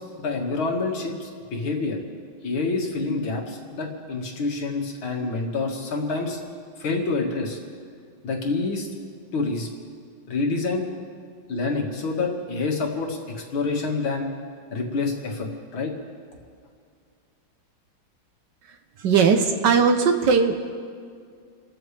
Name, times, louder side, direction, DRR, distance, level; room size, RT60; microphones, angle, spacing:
voice 1, 0.0-2.0 2.4-6.4 6.8-7.6 8.2-8.9 9.3-9.7 10.3-10.8 11.5-13.2 13.5-14.3 14.7-15.9, left 3 dB, 75° left, 0 dB, 2.7 m, -27 dB
voice 2, 19.0-20.7, right 5 dB, 65° right, 6 dB, 1.4 m, -19 dB
28.5 x 13.5 x 3.4 m, 2.2 s
omnidirectional pair, 2.3 m